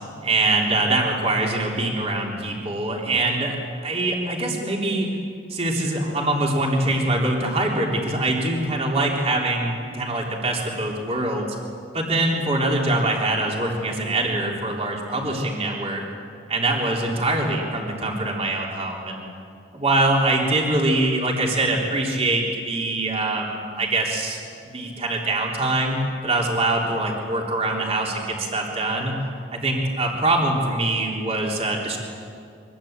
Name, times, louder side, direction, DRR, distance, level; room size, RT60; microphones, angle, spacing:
voice 1, 0.2-3.6 3.8-5.1 5.5-11.5 11.9-16.0 16.5-19.3 19.7-24.4 24.6-29.2 29.5-32.0, right 2 dB, 30° right, -1 dB, 3.5 m, -23 dB
24.5 x 22.0 x 8.9 m, 2.4 s
head